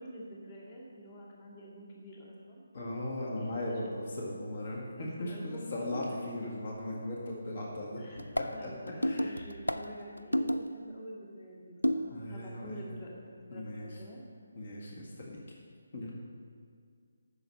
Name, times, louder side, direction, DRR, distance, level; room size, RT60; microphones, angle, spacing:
voice 1, 0.0-2.6 3.3-3.8 4.8-6.0 8.0-8.2 8.5-14.2, equal, 30° left, -3 dB, 1.9 m, -47 dB
voice 2, 2.7-8.0 8.3-8.7 9.0-9.4 12.1-12.8 13.5-13.9 14.6-15.4 15.9-16.1, left 1 dB, 50° left, -3 dB, 1.9 m, -38 dB
sound 1, 8.2-10.8 11.8-12.3, equal, 90° left, 0.4 m, -32 dB
8.3 x 6.9 x 7.6 m, 2.2 s
figure-of-eight pair, 145°, 0 cm